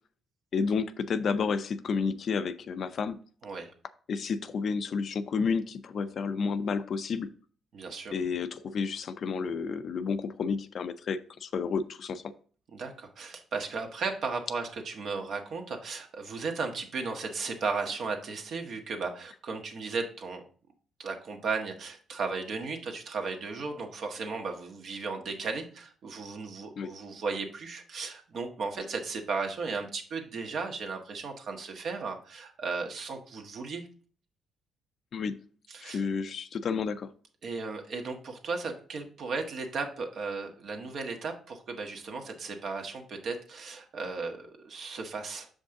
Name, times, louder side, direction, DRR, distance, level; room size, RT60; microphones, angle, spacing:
voice 1, 0.5-3.2 4.1-7.3 8.1-12.2 26.8-26.9 35.1-35.4 35.8-37.1, left 5 dB, 55° left, 0.5 m, -31 dB
voice 2, 7.7-8.2 12.7-20.4 21.0-33.8 35.7-36.0 37.4-45.5, right 4 dB, 65° right, 1.4 m, -35 dB
6.7 x 5.3 x 3.7 m
cardioid pair, 90°, 0 cm